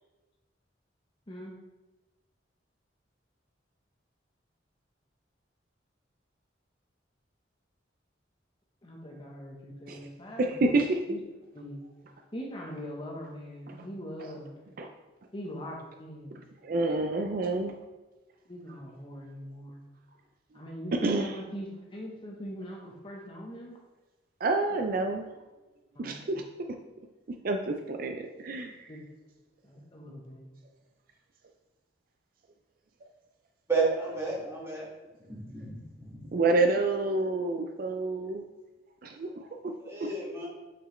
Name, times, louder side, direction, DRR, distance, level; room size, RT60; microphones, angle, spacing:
voice 1, 8.8-10.6 11.1-11.2 11.5-11.8 12.3-14.5 15.3-16.4 18.5-19.8 20.5-23.8 26.0-26.4 28.9-29.0 29.6-30.5, equal, 25° left, -1 dB, 0.9 m, -42 dB
voice 2, 10.4-11.0 13.7-13.9 14.2-14.3 14.8-14.9 16.3-17.8 20.9-21.4 24.4-25.2 26.0-26.4 27.4-29.0 34.5-34.6 36.3-38.4 39.0-39.7 40.0-40.1, right 2 dB, 50° right, 5 dB, 0.4 m, -28 dB
voice 3, 33.7-34.8 35.5-35.8 39.9-40.5, right 4 dB, 15° right, -5 dB, 1.7 m, -30 dB
6.0 x 5.9 x 3.1 m, 1.1 s
head